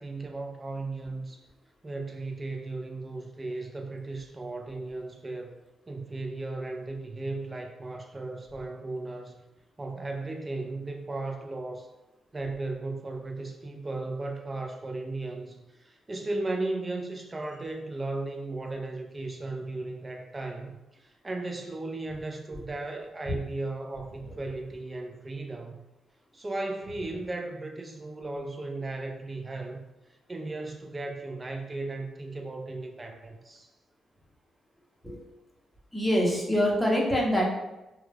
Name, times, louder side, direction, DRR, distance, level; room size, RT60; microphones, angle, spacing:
voice 1, 0.0-1.5 1.8-5.5 5.9-9.4 9.8-11.9 12.3-25.8 26.3-29.8 30.3-33.7, right 2 dB, 30° right, 3 dB, 0.5 m, -36 dB
voice 2, 35.9-37.5, equal, ahead, -3 dB, 0.9 m, -25 dB
2.9 x 2.2 x 2.2 m, 0.99 s
supercardioid pair, 50°, 0 cm